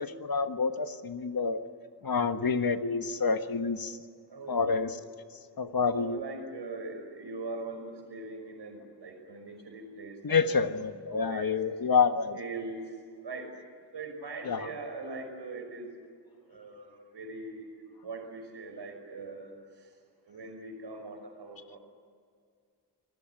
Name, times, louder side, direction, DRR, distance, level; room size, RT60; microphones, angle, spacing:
voice 1, 0.0-1.6 2.0-4.0 4.5-5.0 5.6-6.2 10.2-12.4 14.4-14.7, left 5 dB, 60° left, 9 dB, 1.4 m, -28 dB
voice 2, 4.3-4.9 5.9-11.5 12.3-12.8 13.2-13.5 13.9-15.9 16.5-17.7 18.0-19.5 20.3-21.8, right 3 dB, 85° right, 4 dB, 5.7 m, -41 dB
26.5 x 18.5 x 9.2 m, 2.1 s
wide cardioid pair, 120°, 40 cm